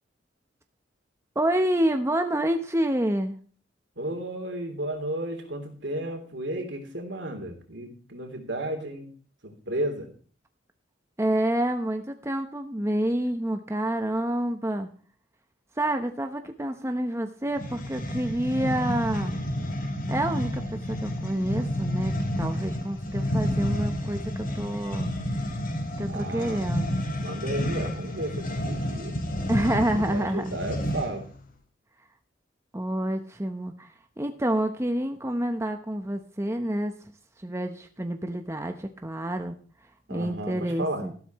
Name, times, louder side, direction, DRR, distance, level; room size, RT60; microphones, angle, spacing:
voice 1, 1.3-3.4 11.2-14.9 15.8-19.4 20.1-25.1 26.0-27.0 29.5-30.6 32.7-36.9 37.4-39.6 40.1-41.1, right 1 dB, 15° right, 6 dB, 0.9 m, -28 dB
voice 2, 4.0-9.1 9.4-10.1 19.3-19.7 26.0-26.7 27.2-29.2 30.0-31.3 40.1-41.1, right 1 dB, 65° right, 4 dB, 3.3 m, -33 dB
sound 1, 17.5-31.3, equal, 50° left, 3.6 m, -30 dB
14.0 x 12.5 x 3.1 m, 0.43 s
head